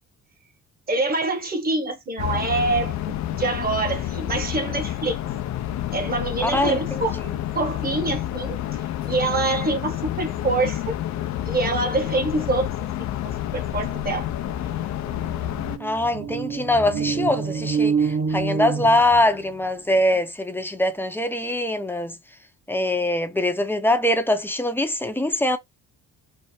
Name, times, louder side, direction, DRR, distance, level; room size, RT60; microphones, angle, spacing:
voice 1, 0.9-5.2 5.9-7.2 7.5-8.8 9.1-10.9 11.5-13.1 13.5-14.3, right 3 dB, 30° right, 1.2 m, -25 dB
sound 1, 2.2-15.8, left 12 dB, 65° left, 0.6 m, -29 dB
voice 2, 6.4-7.4 15.8-22.2 22.7-25.6, left 1 dB, 5° left, 0.7 m, -23 dB
sound 2, 14.2-14.3 14.6-19.6, right 5 dB, 50° right, 1.3 m, -27 dB
3.3 x 2.0 x 4.2 m
cardioid pair, 90°, 30 cm